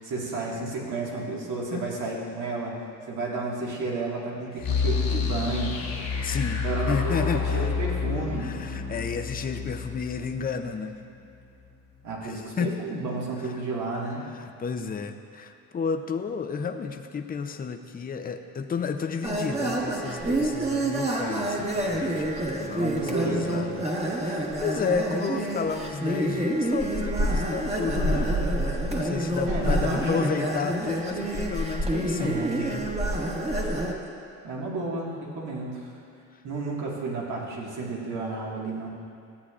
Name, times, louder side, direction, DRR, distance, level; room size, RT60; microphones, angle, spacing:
voice 1, 0.0-2.7 3.1-5.9 6.6-8.6 12.0-14.3 22.7-23.7 29.5-30.3 32.2-32.6 34.4-35.9 36.4-38.9, right 3 dB, 75° right, -4 dB, 1.9 m, -32 dB
sound 1, 4.6-11.4, left 5 dB, 65° left, 1.8 m, -29 dB
voice 2, 6.2-7.7 8.1-11.0 12.2-12.8 13.4-13.7 14.2-23.8 24.1-28.4 28.9-32.9, left 5 dB, 30° left, 7 dB, 0.6 m, -32 dB
sound 2, 19.2-33.9, right 1 dB, 20° right, 1.2 m, -27 dB
14.0 x 8.3 x 2.5 m, 2.7 s
cardioid pair, 90°, 30 cm